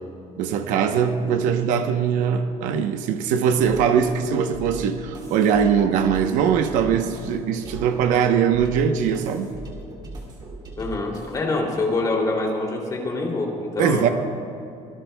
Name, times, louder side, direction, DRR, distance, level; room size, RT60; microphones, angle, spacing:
voice 1, 0.4-9.5 13.8-14.1, right 7 dB, 90° right, 6 dB, 0.9 m, -21 dB
sound 1, 3.6-11.6, right 1 dB, 35° right, 2.6 m, -39 dB
voice 2, 10.8-14.1, left 2 dB, 30° left, -1 dB, 2.8 m, -25 dB
25.0 x 19.5 x 2.3 m, 2.6 s
cardioid pair, 170°, 13 cm